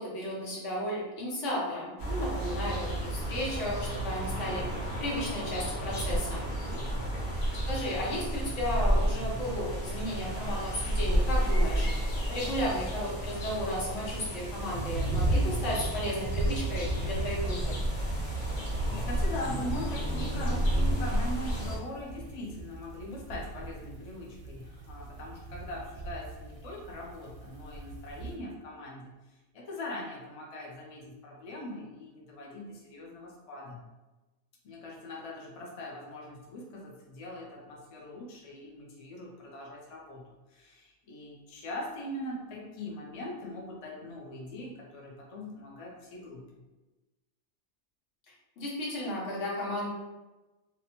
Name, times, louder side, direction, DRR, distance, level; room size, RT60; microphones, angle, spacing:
voice 1, 0.0-2.7 3.0-4.6 5.0-6.4 7.7-11.9 12.3-17.8 48.6-49.9, equal, 85° left, -5 dB, 1.2 m, -34 dB
sound 1, 2.0-21.8, right 1 dB, 65° left, 1.0 m, -31 dB
voice 2, 6.3-6.9 18.0-29.1 29.5-33.8 34.6-40.2 40.5-46.4, left 1 dB, 45° left, -2 dB, 0.4 m, -41 dB
sound 2, 14.7-28.4, right 2 dB, 85° right, 0.9 m, -36 dB
2.7 x 2.1 x 2.8 m, 1.1 s
omnidirectional pair, 1.2 m